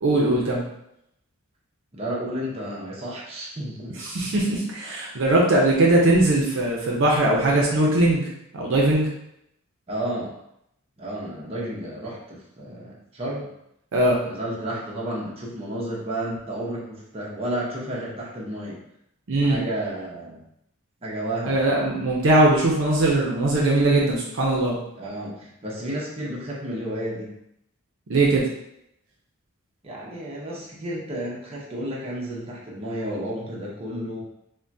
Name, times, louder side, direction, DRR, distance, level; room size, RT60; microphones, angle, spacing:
voice 1, 0.0-0.6 4.1-8.2 8.5-9.1 13.9-14.2 19.3-19.6 21.4-24.8 28.1-28.5, right 2 dB, 60° right, -3 dB, 0.6 m, -20 dB
voice 2, 1.9-4.0 4.3-4.4 9.9-10.3 11.0-13.5 14.2-18.8 19.4-20.4 21.0-21.7 24.9-27.4 29.8-34.2, right 1 dB, 30° right, -5 dB, 0.7 m, -32 dB
3.5 x 2.2 x 2.6 m, 0.78 s
head